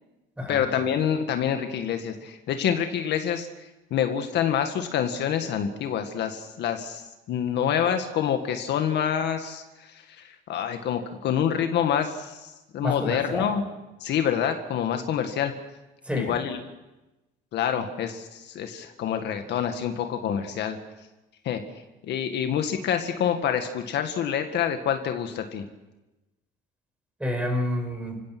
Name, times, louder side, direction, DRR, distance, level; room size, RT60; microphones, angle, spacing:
voice 1, 0.5-13.6 14.0-15.5 16.2-16.6 17.5-20.8 21.4-21.6 22.0-25.7, left 8 dB, 60° left, 6 dB, 1.8 m, -27 dB
voice 2, 12.8-13.5 16.0-16.4 27.2-28.2, left 1 dB, 5° right, 4 dB, 5.4 m, -28 dB
29.5 x 16.5 x 6.1 m, 1.0 s
cardioid pair, 125°, 20 cm